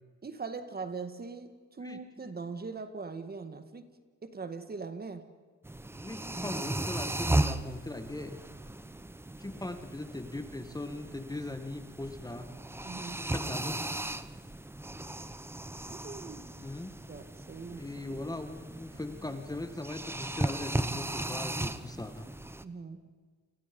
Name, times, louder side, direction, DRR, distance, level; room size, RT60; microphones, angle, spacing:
voice 1, 0.2-3.9 4.2-5.2 12.8-13.3 15.9-16.4 16.8-18.4 22.6-23.0, right 4 dB, 30° right, 9 dB, 1.9 m, -41 dB
sound 1, 5.6-22.6, right 2 dB, 10° right, 0.9 m, -36 dB
voice 2, 6.0-8.4 9.4-12.5 13.2-13.8 16.6-17.0 17.8-22.3, left 2 dB, 10° left, 8 dB, 1.7 m, -39 dB
29.5 x 24.5 x 5.4 m, 1.5 s
cardioid pair, 90°, 30 cm